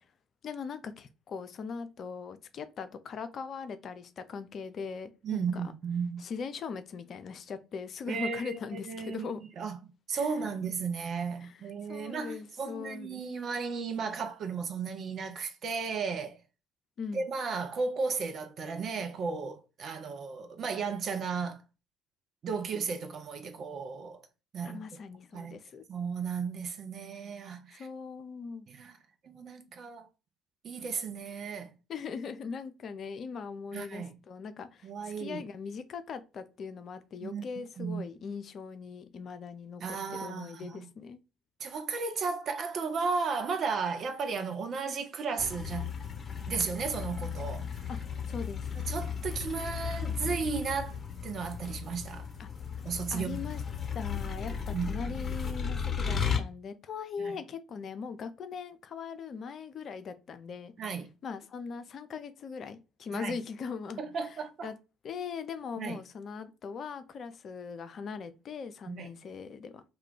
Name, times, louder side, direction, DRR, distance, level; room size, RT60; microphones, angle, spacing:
voice 1, 0.4-5.6 6.2-9.5 10.1-10.3 11.4-11.6 11.9-13.2 17.0-17.3 24.7-25.8 27.7-28.7 31.9-39.8 40.2-41.2 47.9-48.0 48.3-48.6 52.4-52.5 53.1-53.6 53.9-60.7 61.2-64.3 64.6-64.7 65.0-69.8, left 5 dB, 50° left, 0.4 m, -40 dB
voice 2, 5.2-6.2 8.1-9.3 9.6-9.8 10.1-16.4 17.1-21.6 22.4-24.2 24.5-24.8 25.3-25.5 25.9-27.9 28.7-29.0 29.2-30.1 30.6-31.7 33.7-34.2 34.8-35.4 37.2-37.5 37.8-38.1 39.8-40.9 41.6-45.9 46.5-47.7 48.8-52.3 52.8-53.4 54.7-54.9 57.2-57.3 60.8-61.1 63.1-63.3 64.0-64.7 65.8-66.0 68.9-69.1, right 5 dB, 50° right, 0.6 m, -34 dB
sound 1, 45.4-56.4, left 7 dB, 30° left, 0.9 m, -35 dB
2.2 x 2.1 x 3.7 m
hypercardioid pair, 55°, 0 cm